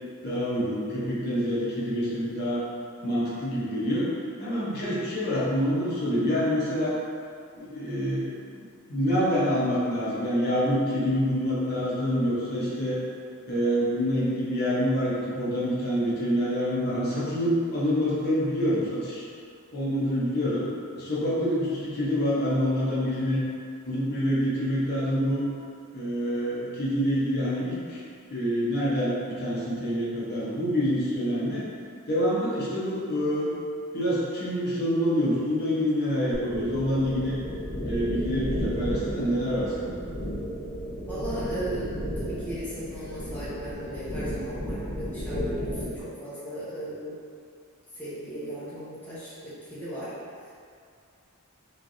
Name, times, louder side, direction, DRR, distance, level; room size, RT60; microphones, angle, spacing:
voice 1, 0.2-2.6 3.0-4.1 4.4-7.0 7.5-13.0 13.5-19.2 19.7-20.6 21.0-23.4 23.8-25.4 25.9-28.0 28.3-31.6 32.1-33.5 33.9-37.4 37.8-40.0, equal, 45° left, -8 dB, 0.7 m, -26 dB
sound 1, 36.3-46.0, equal, 75° left, 0.9 m, -33 dB
voice 2, 41.1-47.2 48.0-50.1, right 1 dB, 10° left, -12 dB, 0.6 m, -37 dB
3.2 x 2.3 x 2.6 m, 2.3 s
head